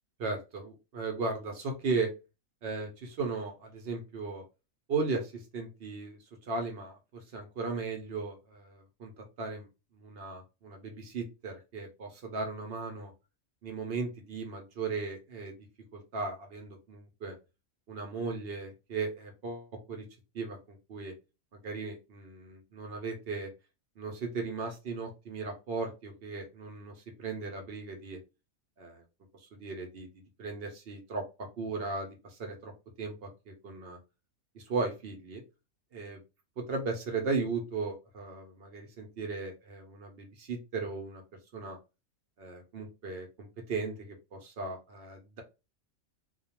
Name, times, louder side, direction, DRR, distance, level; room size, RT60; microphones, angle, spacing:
voice 1, 0.2-2.1 2.6-4.4 4.9-9.1 9.4-9.7 9.9-13.1 13.6-15.6 15.9-17.3 17.9-20.1 20.3-21.1 21.5-23.5 24.0-28.2 28.8-29.0 29.4-30.1 30.4-32.7 33.0-34.0 34.5-35.4 35.9-36.2 36.6-41.2 41.5-41.8 42.4-45.4, right 4 dB, 65° right, 3 dB, 0.6 m, -37 dB
2.3 x 2.1 x 2.8 m, 0.28 s
omnidirectional pair, 1.5 m